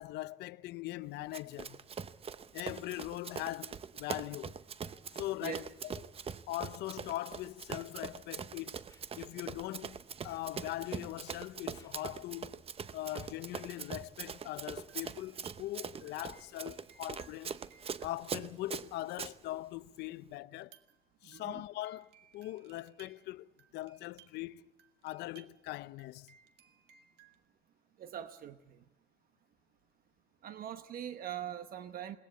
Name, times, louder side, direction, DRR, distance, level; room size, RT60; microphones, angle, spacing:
voice 1, 0.0-1.8 2.5-4.6 5.1-5.9 6.5-8.8 9.2-10.0 10.2-12.6 12.9-17.5 18.0-20.7 21.2-24.7 25.0-26.3, left 16 dB, 80° left, 0.6 m, -41 dB
Run, 1.3-19.3, right 6 dB, 35° right, 0.8 m, -43 dB
Scratching (performance technique), 8.7-9.3 9.6-9.8 10.3-10.4 11.0-11.2 11.6-12.6 13.0-13.3 13.8-13.9, left 4 dB, 20° left, 2.8 m, -65 dB
sound 1, 14.9-19.4 20.5-27.4, right 9 dB, 80° right, 1.7 m, -64 dB
voice 2, 21.2-21.6 28.0-28.8 30.4-32.2, right 9 dB, 60° right, 1.0 m, -42 dB
21.5 x 18.5 x 8.3 m
cardioid pair, 110°, 17 cm